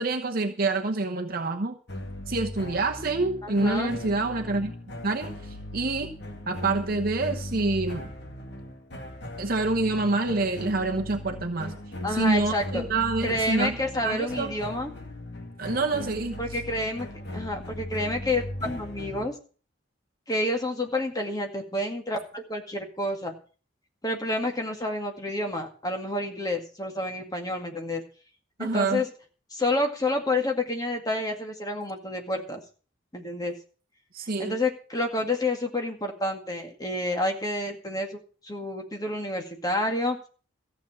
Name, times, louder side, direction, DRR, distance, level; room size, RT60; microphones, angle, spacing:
voice 1, 0.0-1.8 2.3-4.7 5.0-6.1 6.5-8.1 9.4-11.7 12.1-13.8 14.0-14.5 15.6-16.4 28.6-29.0 34.1-34.6, right 3 dB, 50° right, 3 dB, 1.0 m, -27 dB
sound 1, 1.9-19.3, left 1 dB, 60° left, 1.9 m, -38 dB
voice 2, 3.4-3.9 12.0-12.8 13.2-14.9 16.4-19.3 20.3-23.3 24.0-28.0 28.6-29.1 29.5-32.6 33.1-33.6 34.4-40.2, left 1 dB, 20° left, 3 dB, 2.1 m, -29 dB
14.5 x 7.0 x 7.6 m, 0.40 s
head